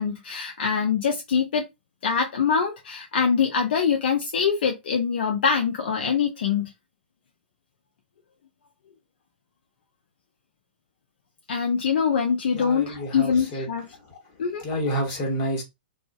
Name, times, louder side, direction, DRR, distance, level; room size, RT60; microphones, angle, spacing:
voice 1, 0.0-1.6 2.0-6.7 11.5-13.8 14.4-14.6, left 6 dB, 65° left, 0.5 m, -24 dB
voice 2, 12.5-13.7 14.6-15.6, equal, 35° left, 1.3 m, -28 dB
2.4 x 2.4 x 2.2 m
hypercardioid pair, 120°, 6 cm